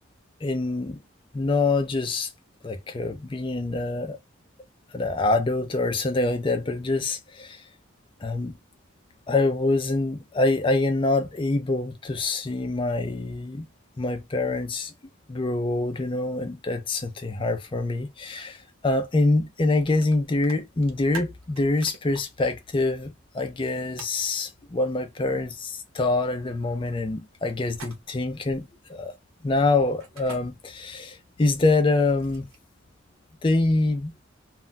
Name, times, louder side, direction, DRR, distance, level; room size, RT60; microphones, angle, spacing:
voice 1, 0.4-1.0 1.3-2.3 2.6-4.2 4.9-7.6 8.2-8.5 9.3-13.7 14.0-14.9 15.3-29.1 29.4-32.5 33.4-34.1, left 2 dB, 25° left, 0.4 m, -25 dB
sound 1, 20.0-20.1 20.4-22.2 24.0-24.2 27.7-28.3 30.0-30.4 31.8-32.7, right 5 dB, 90° right, 0.8 m, -42 dB
2.2 x 2.1 x 3.8 m
head